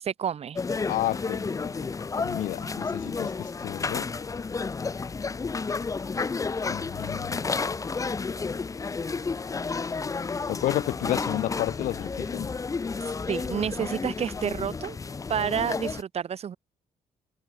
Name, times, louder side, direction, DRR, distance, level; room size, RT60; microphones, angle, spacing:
voice 1, 0.1-0.6 13.0-15.0 15.3-16.6, right 8 dB, 50° right, 0.8 m, -30 dB
sound 1, 0.6-16.0, left 4 dB, 25° left, 0.6 m, -31 dB
voice 2, 0.9-1.9 2.1-4.1 6.7-7.4 10.5-12.5, left 14 dB, 75° left, 0.4 m, -31 dB
cardioid pair, 85°, 14 cm